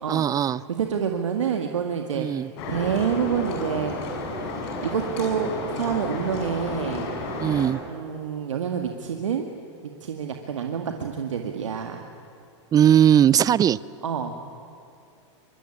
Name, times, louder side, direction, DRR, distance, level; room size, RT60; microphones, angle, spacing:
voice 1, 0.1-0.6 2.1-2.5 7.4-7.8 12.7-13.8, right 10 dB, 25° right, 21 dB, 0.6 m, -19 dB
voice 2, 0.8-2.3 2.7-3.9 4.8-7.1 7.9-9.5 10.0-12.0 14.0-14.4, right 7 dB, 85° right, 4 dB, 2.0 m, -27 dB
sound 1, 2.6-7.7, left 2 dB, 60° left, 7.5 m, -32 dB
25.0 x 23.5 x 10.0 m, 2.7 s
hypercardioid pair, 110°, 16 cm